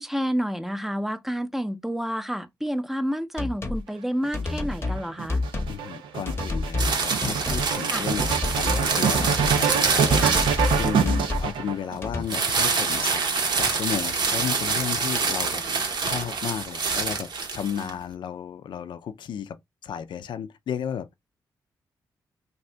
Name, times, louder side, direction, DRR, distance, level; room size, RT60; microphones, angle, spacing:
voice 1, 0.0-5.4 7.9-8.1 10.2-10.4 17.8-17.9, equal, 5° right, 0.5 m, -29 dB
sound 1, 3.4-3.8 4.3-5.0 5.3-5.8 6.3-6.9 7.2-7.7 8.2-8.9 9.1-9.6 10.1-11.5 12.0-12.2, left 3 dB, 30° left, 0.8 m, -28 dB
sound 2, 4.2-12.2 13.0-13.9, right 7 dB, 85° right, 0.4 m, -26 dB
voice 2, 5.7-8.3 8.5-10.5 10.8-13.2 13.6-19.6 19.8-21.1, left 8 dB, 70° left, 0.4 m, -33 dB
sound 3, 6.8-11.4 12.3-17.9, right 4 dB, 65° right, 0.8 m, -26 dB
2.7 x 2.5 x 3.2 m
cardioid pair, 60°, 8 cm